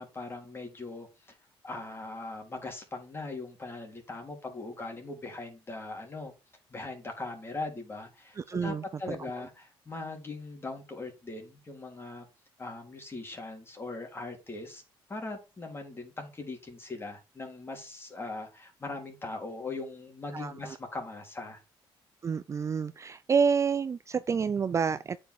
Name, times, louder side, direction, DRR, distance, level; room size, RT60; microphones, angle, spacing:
voice 1, 0.0-1.4 1.6-6.3 6.7-12.3 12.6-14.8 15.1-21.6, left 3 dB, 25° left, 3.5 m, -40 dB
voice 2, 8.4-9.2 20.3-20.8 22.2-25.2, right 6 dB, 30° right, 0.4 m, -29 dB
8.9 x 5.5 x 4.8 m
cardioid pair, 100°, 10 cm